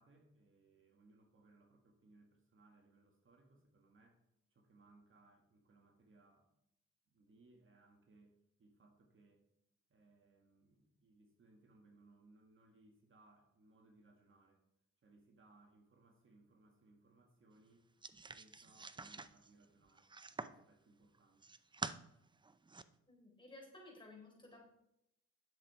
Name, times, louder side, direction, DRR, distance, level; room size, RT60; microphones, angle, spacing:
voice 1, 0.0-4.2 4.5-6.5 7.1-9.5 9.9-14.6 15.0-17.9 18.3-20.1 20.4-21.5, right 2 dB, 40° right, 3 dB, 1.8 m, -67 dB
sound 1, 18.0-20.6 21.1-22.0 22.4-22.8, right 3 dB, 15° right, 0.5 m, -47 dB
voice 2, 23.1-24.7, left 2 dB, 15° left, -1 dB, 4.4 m, -56 dB
10.5 x 7.3 x 4.8 m, 0.80 s
cardioid pair, 90°, 30 cm